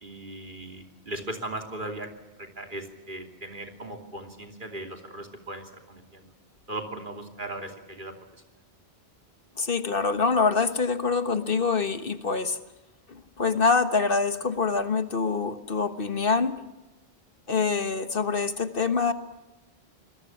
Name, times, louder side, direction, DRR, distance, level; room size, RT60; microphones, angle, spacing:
voice 1, 0.0-2.1 2.4-6.3 6.7-8.1, right 2 dB, 50° right, 4 dB, 3.2 m, -38 dB
voice 2, 9.6-12.6 13.1-16.5 17.5-19.1, left 4 dB, 55° left, 9 dB, 1.5 m, -25 dB
26.5 x 20.5 x 7.2 m, 1.0 s
omnidirectional pair, 1.1 m